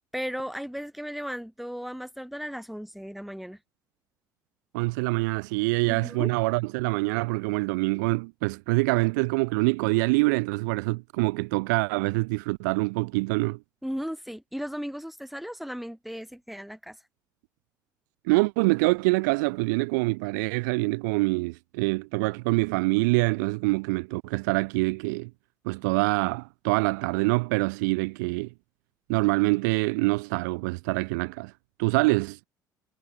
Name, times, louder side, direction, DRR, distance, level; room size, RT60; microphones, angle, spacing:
voice 1, 0.1-3.6 5.9-6.3 13.8-17.0, equal, ahead, 2.8 m, -36 dB
voice 2, 4.7-13.6 18.3-25.3 25.6-28.5 29.1-31.5 31.8-32.4, right 27 dB, 75° right, 0.5 m, -25 dB
hypercardioid pair, 55°, 10 cm